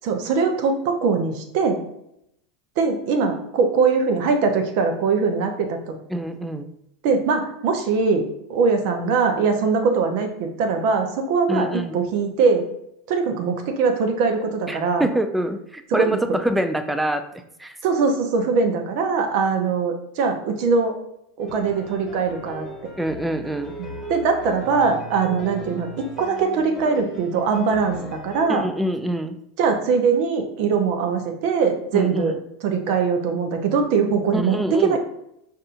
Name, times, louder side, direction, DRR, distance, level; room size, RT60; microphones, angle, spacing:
voice 1, 0.0-1.8 2.8-6.0 7.0-12.7 13.1-15.1 16.0-16.2 17.8-20.9 21.4-22.7 23.8-28.6 29.6-32.3 32.6-35.0, right 5 dB, 60° right, 4 dB, 0.7 m, -22 dB
voice 2, 6.1-6.7 11.5-12.1 14.7-17.2 17.6-17.8 23.0-23.7 28.5-29.4 31.9-32.4 34.3-35.0, right 1 dB, 5° right, 8 dB, 0.4 m, -25 dB
sound 1, 21.4-28.5, right 1 dB, 30° left, 1.4 m, -38 dB
5.3 x 2.6 x 2.6 m, 0.79 s
hypercardioid pair, 90°, 0 cm